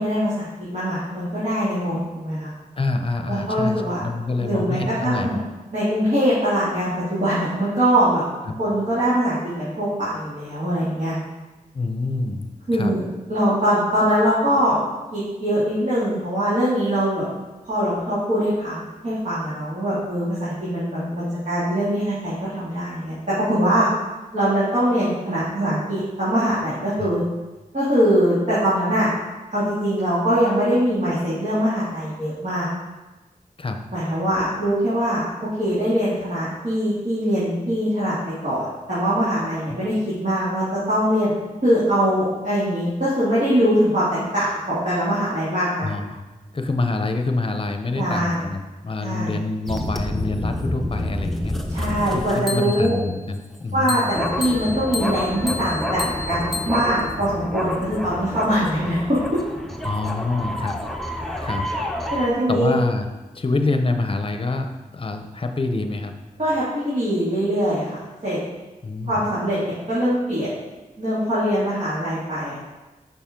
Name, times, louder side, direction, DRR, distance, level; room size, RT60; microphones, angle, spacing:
voice 1, 0.0-2.5 3.3-4.0 4.4-5.4 5.7-8.2 8.6-11.2 12.7-13.0 13.3-14.8 15.1-17.3 17.6-23.9 24.3-27.2 27.7-29.1 29.5-32.7 33.9-41.3 41.6-45.9 47.9-48.4 49.0-49.4 51.7-53.0 53.7-59.2 62.1-62.8 66.4-68.4 69.1-70.5 71.0-72.6, equal, 55° right, -11 dB, 2.5 m, -22 dB
voice 2, 2.8-5.3 8.5-8.6 11.7-12.9 27.0-27.2 33.6-33.8 45.8-46.2 46.5-51.6 52.1-54.1 59.8-60.8 61.4-61.7 62.5-63.1 63.3-64.7 64.9-66.1 68.8-69.3, left 3 dB, 35° left, 6 dB, 0.8 m, -26 dB
sound 1, 49.7-53.0 53.9-62.3, left 1 dB, ahead, 0.8 m, -28 dB
6.9 x 5.5 x 3.8 m, 1.2 s
cardioid pair, 55°, 15 cm